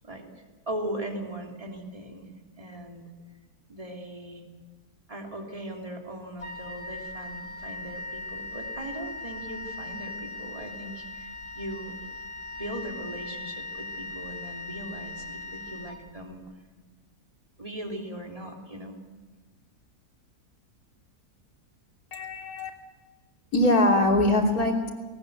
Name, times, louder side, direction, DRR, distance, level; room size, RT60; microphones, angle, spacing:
voice 1, 0.7-2.3 2.6-3.1 3.7-4.4 5.1-12.0 12.5-16.4 17.6-19.0, right 1 dB, 20° right, 1 dB, 3.1 m, -39 dB
Wind instrument woodwind instrument, 6.4-16.5, left 2 dB, 85° left, 3.7 m, -39 dB
voice 2, 22.1-22.7 23.5-24.9, left 1 dB, 70° left, 1 dB, 3.7 m, -22 dB
19.5 x 19.0 x 8.0 m, 1.3 s
omnidirectional pair, 1.6 m